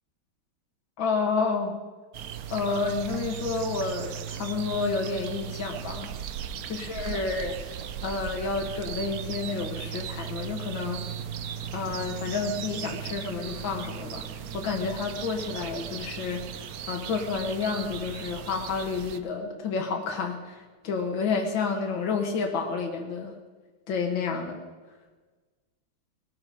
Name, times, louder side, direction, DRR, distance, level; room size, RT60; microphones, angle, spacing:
voice 1, 1.0-1.7 2.5-6.1 6.7-7.6 8.0-11.0 11.7-14.2 14.5-23.3 23.9-24.6, left 4 dB, 65° left, 2 dB, 2.5 m, -30 dB
sound 1, 2.1-19.2, right 9 dB, 65° right, 0.9 m, -37 dB
sound 2, 2.3-10.2, right 8 dB, 80° right, 1.7 m, -43 dB
21.0 x 13.0 x 5.2 m, 1.3 s
omnidirectional pair, 2.3 m